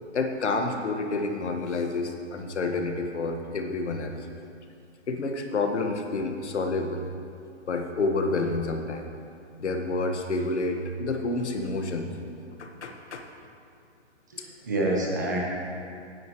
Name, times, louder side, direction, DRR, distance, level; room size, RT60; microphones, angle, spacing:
voice 1, 0.1-4.1 5.1-7.0 7.7-9.0 9.6-12.1 12.6-13.2 14.4-14.5, left 3 dB, 70° left, 4 dB, 1.4 m, -29 dB
voice 2, 14.3-15.4, right 1 dB, 15° right, -3 dB, 0.7 m, -27 dB
16.5 x 9.5 x 3.1 m, 2.5 s
hypercardioid pair, 175°, 35 cm